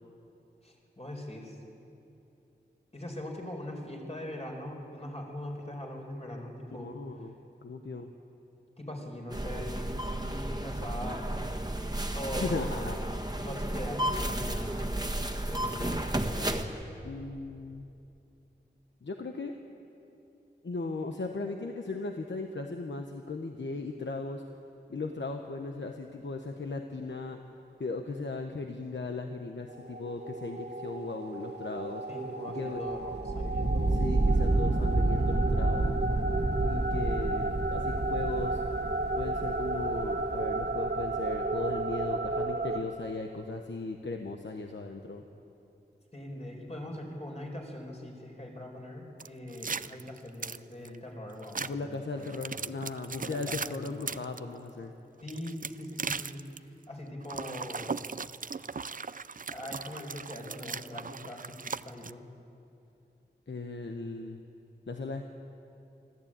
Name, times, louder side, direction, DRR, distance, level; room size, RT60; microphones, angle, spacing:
voice 1, 0.6-1.6 2.9-6.9 8.8-13.0 13.4-14.9 15.4-16.8 32.1-34.0 46.1-52.5 53.2-54.0 55.2-58.0 59.5-62.2, left 1 dB, 35° left, 1 dB, 4.4 m, -41 dB
voice 2, 6.7-7.4 7.6-8.1 12.4-13.0 17.0-17.9 19.0-19.5 20.6-24.4 24.9-27.4 27.8-32.0 32.5-32.8 33.9-36.0 36.6-38.6 39.1-45.2 51.6-54.9 63.5-64.4 64.9-65.2, left 3 dB, 85° left, 4 dB, 1.1 m, -37 dB
sound 1, 9.3-16.6, right 1 dB, 20° right, 1.6 m, -33 dB
sound 2, 29.7-42.8, right 2 dB, 70° right, 1.8 m, -29 dB
sound 3, 49.2-50.9 51.4-51.7 52.2-54.4 55.2-56.6 57.2-62.1, right 5 dB, 50° right, 0.5 m, -38 dB
24.5 x 14.0 x 8.9 m, 2.7 s
wide cardioid pair, 55°, 18 cm